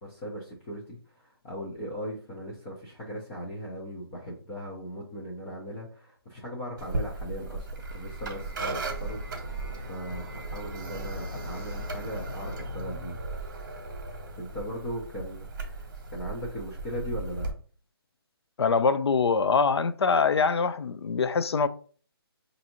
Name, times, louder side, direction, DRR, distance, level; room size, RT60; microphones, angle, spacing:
voice 1, 0.0-7.7 7.9-13.2 14.4-17.5, equal, 15° left, 0.5 m, -38 dB
sound 1, 6.8-17.5, right 2 dB, 45° right, 1.0 m, -36 dB
voice 2, 18.6-21.7, left 5 dB, 85° left, 0.4 m, -24 dB
4.8 x 2.6 x 2.8 m
hypercardioid pair, 165°, 13 cm